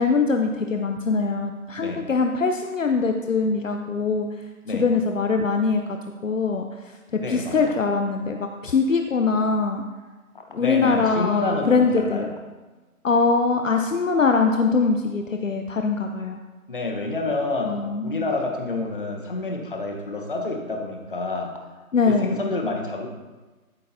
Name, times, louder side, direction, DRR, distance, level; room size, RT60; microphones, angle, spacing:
voice 1, 0.0-4.3 4.7-6.0 6.2-6.6 7.3-9.8 10.5-12.3 13.0-16.4 17.6-18.3 21.9-22.5, left 4 dB, 60° left, 4 dB, 0.7 m, -22 dB
voice 2, 7.2-7.8 10.6-12.3 16.7-21.5 22.0-23.1, left 2 dB, 35° left, 2 dB, 1.1 m, -28 dB
13.0 x 6.4 x 2.7 m, 1.3 s
figure-of-eight pair, 170°, 44 cm